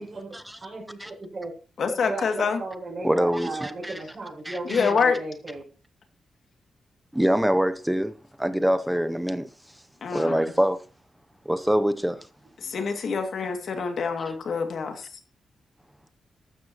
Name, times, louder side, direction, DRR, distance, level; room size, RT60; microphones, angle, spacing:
voice 1, 0.0-1.5 2.0-5.6 12.6-12.8, right 2 dB, 30° right, 6.5 m, -35 dB
voice 2, 1.8-2.6 4.7-5.2 10.0-10.4 12.6-15.1, left 5 dB, 55° left, 2.4 m, -26 dB
voice 3, 3.0-4.0 4.4-4.9 7.1-8.1 8.4-9.5 10.1-10.8 11.5-12.3, equal, 5° right, 0.7 m, -24 dB
14.0 x 12.5 x 3.0 m
wide cardioid pair, 145°, 0 cm